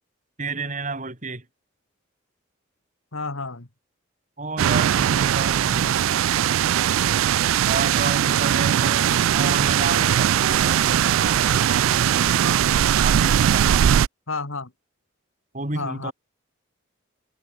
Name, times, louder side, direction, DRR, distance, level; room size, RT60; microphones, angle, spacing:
voice 1, 0.4-1.4 4.4-6.0 7.7-12.6 13.0-14.0 15.5-16.1, right 3 dB, 40° right, 3.9 m, -31 dB
voice 2, 3.1-3.7 8.6-9.1 14.3-14.7 15.7-16.1, left 3 dB, 85° left, 2.5 m, -32 dB
sound 1, 4.6-14.1, right 10 dB, 85° right, 0.3 m, -20 dB
head